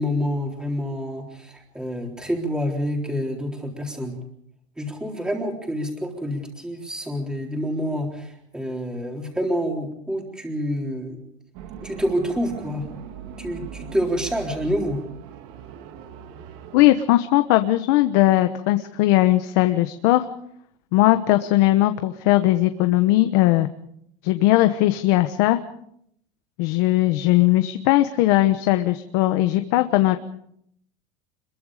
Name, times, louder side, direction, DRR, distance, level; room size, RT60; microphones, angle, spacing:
voice 1, 0.0-4.2 4.8-11.2 11.8-12.8 13.4-15.0, equal, 5° right, 1 dB, 3.8 m, -27 dB
sound 1, 11.5-16.9, right 8 dB, 55° right, 2.3 m, -40 dB
voice 2, 16.7-20.2 20.9-23.7 24.2-25.6 26.6-30.2, left 16 dB, 55° left, 8 dB, 1.2 m, -19 dB
27.0 x 22.5 x 5.1 m, 0.71 s
cardioid pair, 170°, 17 cm